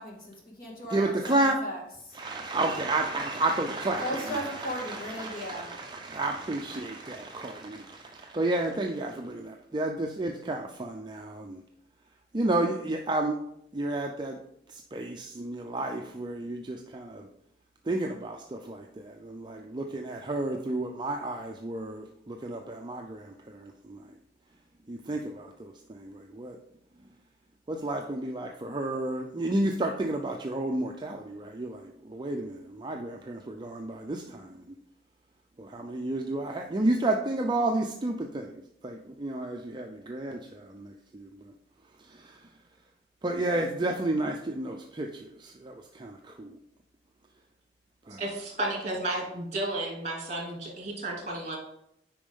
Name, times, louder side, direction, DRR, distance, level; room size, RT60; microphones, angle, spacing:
voice 1, 0.0-2.2 4.0-5.7, equal, 55° left, -1 dB, 1.9 m, -37 dB
voice 2, 0.9-1.6 2.2-11.6 12.3-13.4 13.7-14.4 14.9-17.3 17.9-24.0 24.9-26.6 27.7-34.5 35.6-41.3 42.2-42.3 43.2-46.5 48.1-48.2, right 2 dB, 25° right, 2 dB, 0.5 m, -31 dB
voice 3, 48.1-51.6, right 1 dB, 40° right, -2 dB, 2.5 m, -33 dB
8.6 x 5.2 x 3.6 m, 0.76 s
head